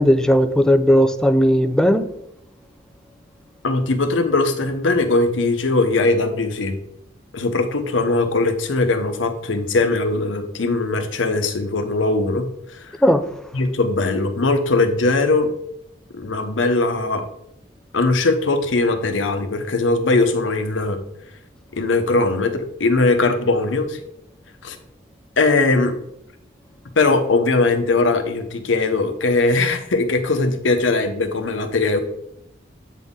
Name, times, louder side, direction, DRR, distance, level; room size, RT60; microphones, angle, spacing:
voice 1, 0.0-2.1 13.0-13.2, equal, 5° left, 0.4 m, -16 dB
voice 2, 3.6-6.7 7.3-13.0 13.5-15.5 16.1-17.3 17.9-21.0 21.7-24.0 24.6-24.8 25.4-25.9 27.0-32.0, left 3 dB, 90° left, 0.8 m, -20 dB
8.2 x 4.1 x 3.7 m
head